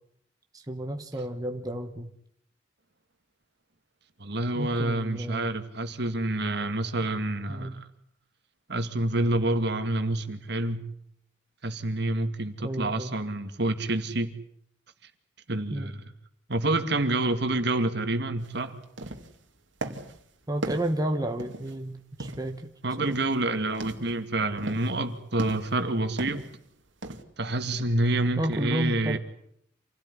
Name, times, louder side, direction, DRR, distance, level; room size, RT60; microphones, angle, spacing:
voice 1, 0.5-2.1 4.5-5.5 7.5-7.8 12.6-13.2 15.7-16.0 20.5-22.7 23.1-23.2 28.4-29.2, right 1 dB, 20° right, 5 dB, 1.4 m, -31 dB
voice 2, 4.2-7.8 8.7-10.9 11.6-14.3 15.5-16.1 16.5-18.8 22.8-26.5 27.4-29.2, right 2 dB, 60° right, 8 dB, 2.3 m, -28 dB
sound 1, 18.4-18.5 18.8-19.4 19.8-20.2 20.6-21.8 22.2-22.6 23.0-23.4 23.7-24.1 24.6-25.0 25.4-25.8 26.2-26.6 27.0-27.2, right 2 dB, 80° right, 2.5 m, -37 dB
28.0 x 17.0 x 9.9 m, 0.72 s
head